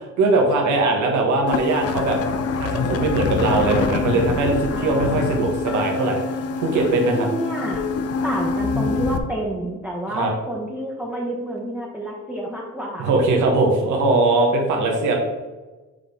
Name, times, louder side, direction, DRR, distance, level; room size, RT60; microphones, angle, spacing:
voice 1, 0.2-2.2 2.6-6.2 6.6-7.3 10.1-10.3 13.0-15.2, right 2 dB, 75° right, 1 dB, 1.4 m, -20 dB
sound 1, 1.5-9.2, left 4 dB, 55° left, 0.6 m, -25 dB
voice 2, 3.7-4.4 4.7-5.4 7.2-7.9 8.2-13.2, right 1 dB, 5° right, -3 dB, 1.1 m, -29 dB
6.5 x 3.9 x 3.8 m, 1.2 s
cardioid pair, 90°, 30 cm